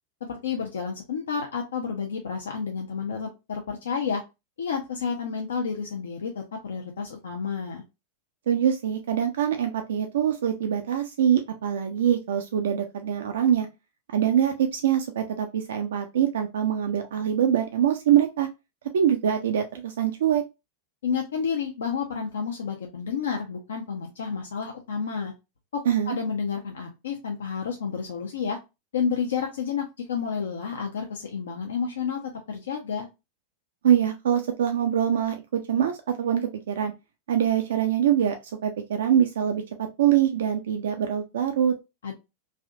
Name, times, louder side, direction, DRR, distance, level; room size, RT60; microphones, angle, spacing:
voice 1, 0.3-4.2 4.6-7.8 21.0-25.3 25.7-25.8 26.1-28.6 28.9-33.1 42.0-42.1, left 6 dB, 65° left, 2 dB, 0.5 m, -30 dB
voice 2, 8.5-13.7 14.1-18.5 18.9-20.4 25.9-26.2 33.8-36.9 37.3-38.4 38.6-41.8, right 9 dB, 60° right, 5 dB, 0.4 m, -24 dB
3.3 x 2.6 x 2.4 m, 0.25 s
figure-of-eight pair, 90°, 0 cm